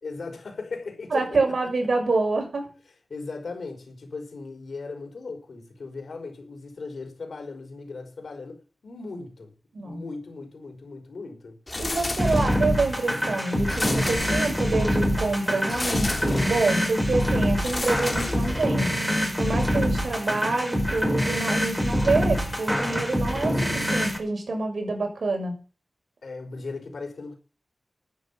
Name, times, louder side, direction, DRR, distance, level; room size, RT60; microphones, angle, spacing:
voice 1, 0.0-1.4 3.1-9.5 9.8-11.6 26.2-27.3, left 3 dB, 80° left, 5.0 m, -37 dB
voice 2, 1.1-2.7 9.7-10.0 11.8-18.9 19.4-25.5, right 3 dB, 80° right, 6.6 m, -27 dB
sound 1, 11.7-12.8 13.7-14.9 15.7-16.7 17.6-18.9, left 2 dB, 35° left, 2.0 m, -32 dB
sound 2, 12.2-24.2, equal, ahead, 4.8 m, -25 dB
12.5 x 9.9 x 7.4 m
wide cardioid pair, 65°, 0 cm